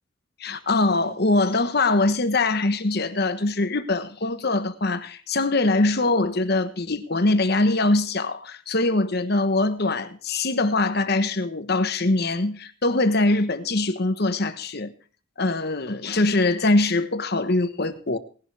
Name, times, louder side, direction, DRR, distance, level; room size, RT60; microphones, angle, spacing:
voice 1, 0.4-14.9 15.4-18.2, left 2 dB, 50° left, 1.2 m, -23 dB
18.5 x 11.0 x 3.4 m
head